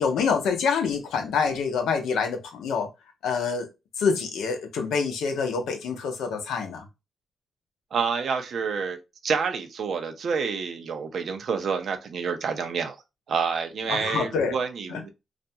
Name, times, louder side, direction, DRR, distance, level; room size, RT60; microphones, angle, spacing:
voice 1, 0.0-2.9 3.2-3.7 4.0-6.8 13.9-14.6 14.9-15.1, left 5 dB, 85° left, 0.6 m, -26 dB
voice 2, 7.9-9.0 9.2-13.0 13.3-15.1, right 5 dB, 65° right, 0.5 m, -28 dB
2.4 x 2.1 x 2.7 m
cardioid pair, 65°, 0 cm